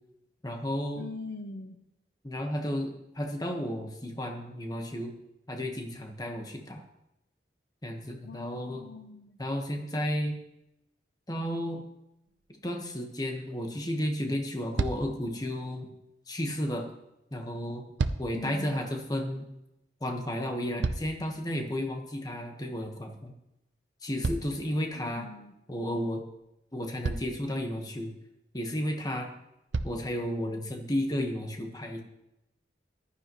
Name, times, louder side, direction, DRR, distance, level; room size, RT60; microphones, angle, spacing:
voice 1, 0.4-1.1 2.2-5.1 5.5-6.8 7.8-8.9 9.4-10.4 11.3-11.9 12.6-15.9 16.3-16.9 17.3-17.8 18.2-19.5 20.0-23.3 24.0-25.3 25.7-26.2 26.7-28.1 28.5-29.3 29.8-32.0, equal, 20° left, 3 dB, 1.3 m, -33 dB
voice 2, 1.0-1.8 8.3-9.4 18.3-18.9 24.9-25.5, left 3 dB, 65° left, 8 dB, 0.7 m, -42 dB
sound 1, 12.3-12.5 13.9-14.0 14.3-14.5 14.8-15.3 17.6-18.5 20.3-21.4 24.2-25.2 26.4-26.5 27.0-27.5 28.9-29.0 29.7-30.1 30.9-31.0, right 3 dB, 85° right, 0.6 m, -32 dB
14.5 x 11.5 x 3.1 m, 0.88 s
head